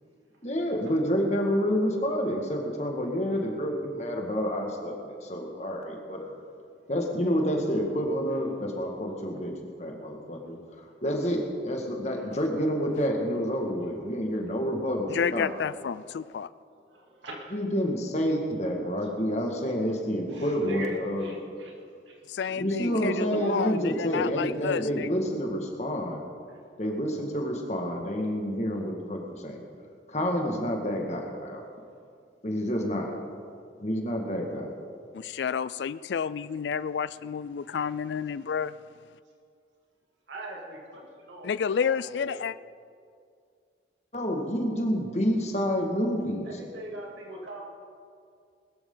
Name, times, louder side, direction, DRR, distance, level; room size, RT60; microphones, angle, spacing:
voice 1, 0.4-6.3 6.9-9.5 9.8-10.6 11.0-15.5 17.5-21.3 22.6-26.2 26.8-29.6 30.1-31.6 32.4-33.2 33.8-34.7 44.1-46.5, equal, 35° left, 1 dB, 1.9 m, -28 dB
voice 2, 12.0-12.3 16.7-17.5 19.4-19.5 20.3-21.7 22.1-22.2 22.5-24.9 26.5-26.7 27.3-27.5 37.7-38.0 40.3-42.4 46.4-47.6, equal, 80° right, -2 dB, 2.8 m, -41 dB
voice 3, 15.1-16.5 22.3-25.1 35.1-38.8 41.4-42.5, left 7 dB, 70° left, 17 dB, 0.3 m, -30 dB
20.5 x 13.5 x 3.9 m, 2.3 s
head